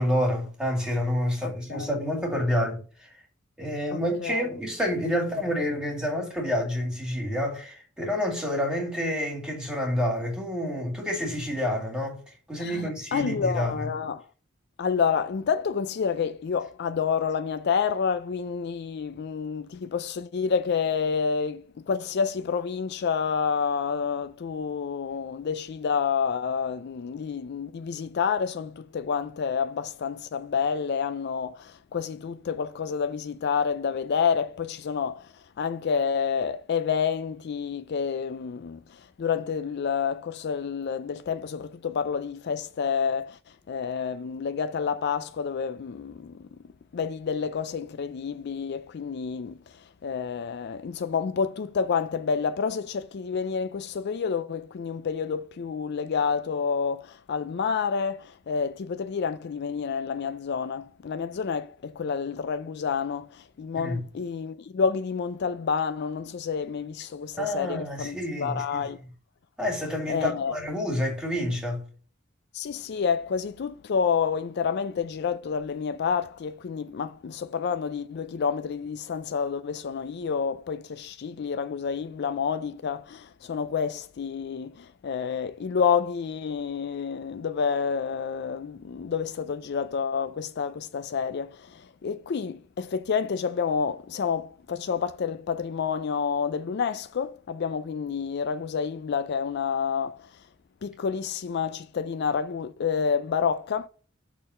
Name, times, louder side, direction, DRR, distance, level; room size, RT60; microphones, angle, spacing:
voice 1, 0.0-3.1 3.6-12.2 12.5-13.7 63.7-64.0 67.4-68.8 69.6-71.8, equal, 5° right, 2.4 m, -28 dB
voice 2, 1.4-1.9 3.9-4.5 12.6-14.3 14.8-43.4 43.7-46.5 46.9-69.0 70.1-70.6 72.5-100.3 100.8-103.9, left 6 dB, 55° left, 0.4 m, -29 dB
6.6 x 3.7 x 5.4 m
head